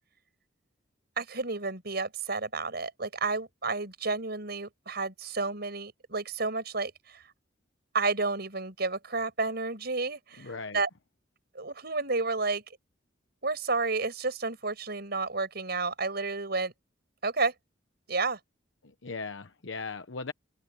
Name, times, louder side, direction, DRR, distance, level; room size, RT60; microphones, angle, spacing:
voice 1, 1.2-7.2 7.9-10.9 11.5-12.6 13.4-16.7 17.2-17.5 18.1-18.4, right 3 dB, 60° right, 6.0 m, -31 dB
voice 2, 10.4-10.8 19.0-20.3, left 4 dB, 85° left, 1.0 m, -37 dB
head